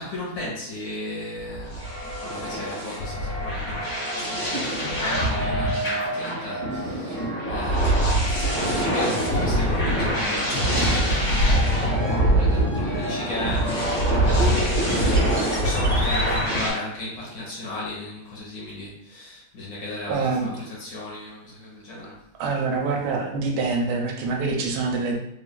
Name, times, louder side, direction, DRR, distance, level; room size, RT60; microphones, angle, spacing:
voice 1, 0.0-13.9 14.2-22.2, left 2 dB, 65° left, -6 dB, 1.7 m, -35 dB
sound 1, 1.4-16.7, equal, 45° left, 1.7 m, -24 dB
sound 2, 1.8-14.7, right 2 dB, 20° right, 0.9 m, -35 dB
voice 2, 20.1-20.5 22.4-25.2, right 4 dB, 80° right, 1 dB, 1.4 m, -25 dB
3.7 x 2.5 x 2.2 m, 0.77 s
omnidirectional pair, 2.3 m